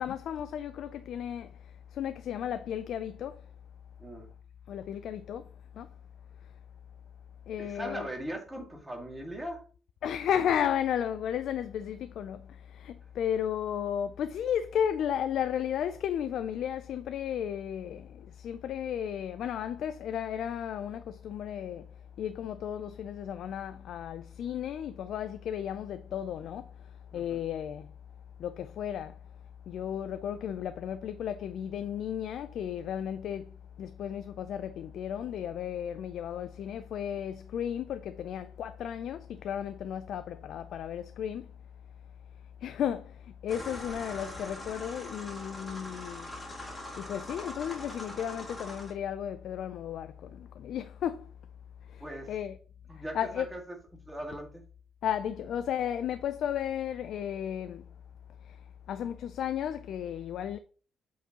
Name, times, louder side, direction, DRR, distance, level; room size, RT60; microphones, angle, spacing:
voice 1, 0.0-3.5 4.7-5.9 6.4-6.5 7.5-8.1 10.0-27.9 28.4-29.3 29.7-41.5 42.6-46.4 47.0-51.3 51.8-52.6 52.9-53.5 55.0-57.9 58.4-60.6, left 9 dB, 75° left, 0.4 m, -34 dB
voice 2, 4.0-4.3 7.6-9.6 27.1-27.4 52.0-52.3 52.9-53.8 54.0-54.6, right 1 dB, 10° right, 2.0 m, -39 dB
sound 1, 43.5-48.9, left 1 dB, 15° left, 2.2 m, -42 dB
7.9 x 4.7 x 2.9 m
cardioid pair, 110°, 0 cm